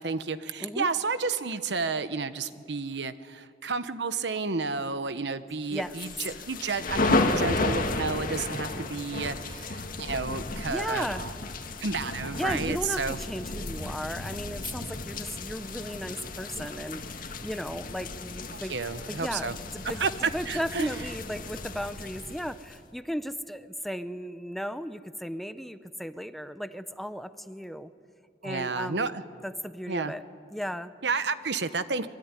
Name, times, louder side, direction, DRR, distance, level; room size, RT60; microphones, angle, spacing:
voice 1, 0.0-11.3 11.8-13.2 18.5-19.5 20.0-20.1 20.5-20.9 28.4-29.2 29.9-30.1 31.0-32.1, right 4 dB, 70° right, 12 dB, 1.1 m, -31 dB
sound 1, 5.8-22.8, left 2 dB, 50° left, 1.9 m, -33 dB
voice 2, 10.7-11.2 12.4-18.8 19.1-27.9 28.4-29.1 29.4-30.2 30.5-30.9, equal, ahead, 11 dB, 0.7 m, -35 dB
26.0 x 22.5 x 9.8 m, 2.2 s
head